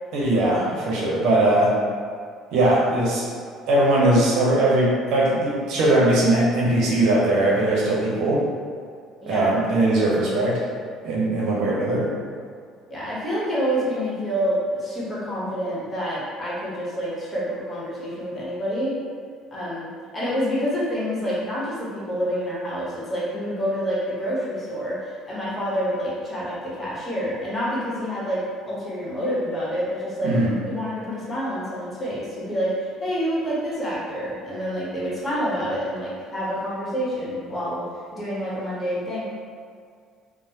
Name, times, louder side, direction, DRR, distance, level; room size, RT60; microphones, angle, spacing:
voice 1, 0.1-1.8 2.5-3.2 3.7-8.4 9.3-10.6 11.0-12.1 30.2-30.5, right 1 dB, 70° right, -4 dB, 0.7 m, -20 dB
voice 2, 9.2-9.5 12.9-18.9 19.5-30.4 30.7-39.2, equal, 25° left, -8 dB, 1.1 m, -27 dB
3.0 x 2.1 x 2.8 m, 2.1 s
supercardioid pair, 80°, 0 cm